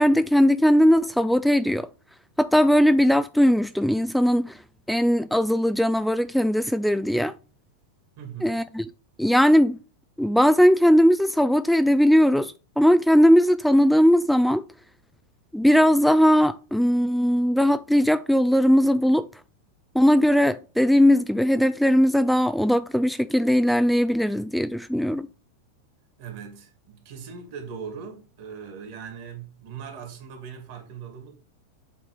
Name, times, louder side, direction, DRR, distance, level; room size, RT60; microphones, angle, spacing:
voice 1, 0.0-1.9 2.4-4.5 4.9-7.3 8.4-8.8 9.2-9.8 10.2-14.6 15.5-19.3 20.0-25.3, equal, ahead, 0.3 m, -19 dB
voice 2, 8.2-8.6 26.2-31.4, right 6 dB, 55° right, 2.4 m, -40 dB
8.0 x 3.7 x 4.9 m
figure-of-eight pair, 95°, 0 cm